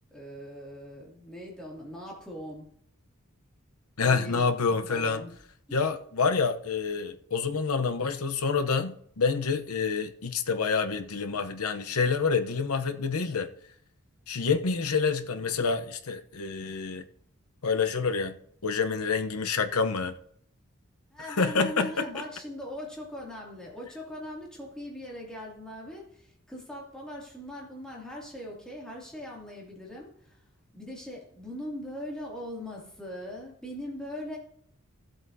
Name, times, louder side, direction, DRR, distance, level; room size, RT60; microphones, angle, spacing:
voice 1, 0.1-2.7 4.0-5.3 5.7-5.8 21.1-30.4 30.7-34.4, left 1 dB, 5° left, 2.4 m, -40 dB
voice 2, 4.0-5.2 5.7-13.5 14.3-17.0 17.6-18.4 18.6-20.1 21.4-22.0, left 5 dB, 85° left, 0.8 m, -27 dB
15.5 x 7.8 x 2.7 m
head